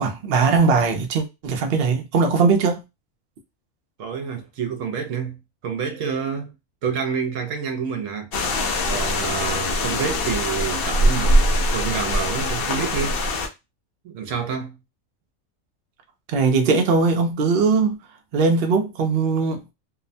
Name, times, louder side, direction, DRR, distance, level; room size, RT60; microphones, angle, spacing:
voice 1, 0.0-2.8 16.3-18.0 18.3-19.7, right 4 dB, 55° right, 0.6 m, -20 dB
voice 2, 4.0-5.4 5.6-6.5 6.8-8.3 8.9-13.5 14.0-14.8, right 6 dB, 75° right, 1.0 m, -28 dB
sound 1, 8.3-13.5, left 1 dB, 60° left, 0.6 m, -22 dB
2.7 x 2.1 x 2.5 m
omnidirectional pair, 1.4 m